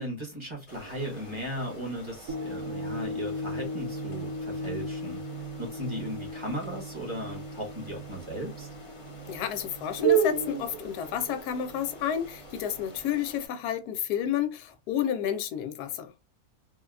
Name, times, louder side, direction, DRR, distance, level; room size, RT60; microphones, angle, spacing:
voice 1, 0.0-5.2 5.6-8.7, equal, 20° right, 1.0 m, -36 dB
sound 1, 0.7-13.5, right 7 dB, 50° left, 0.3 m, -36 dB
sound 2, 2.3-10.7 11.2-11.3, left 1 dB, 85° right, 1.3 m, -38 dB
voice 2, 9.3-16.1, left 9 dB, 85° left, 1.1 m, -30 dB
3.2 x 2.2 x 2.3 m
omnidirectional pair, 1.6 m